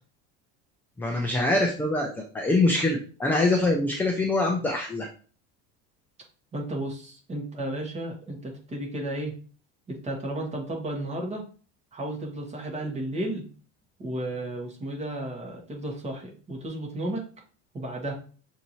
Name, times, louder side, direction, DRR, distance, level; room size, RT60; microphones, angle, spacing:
voice 1, 1.0-2.1 2.3-5.1, left 2 dB, 5° left, 1 dB, 0.4 m, -24 dB
voice 2, 6.5-9.3 9.9-11.4 11.9-13.4 14.0-17.2 17.7-18.1, right 1 dB, 20° right, 0 dB, 1.3 m, -33 dB
6.5 x 2.7 x 3.0 m, 0.39 s
cardioid pair, 155°, 32 cm